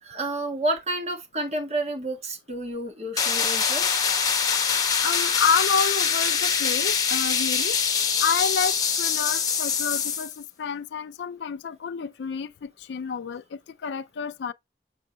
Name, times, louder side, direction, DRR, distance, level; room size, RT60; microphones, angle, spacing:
voice 1, 0.0-3.9, right 1 dB, 35° right, 1.5 m, -30 dB
sound 1, 3.2-10.4, left 6 dB, 20° left, 1.1 m, -24 dB
voice 2, 4.8-7.8 8.2-14.5, left 6 dB, 80° left, 0.4 m, -29 dB
6.8 x 6.3 x 2.2 m
head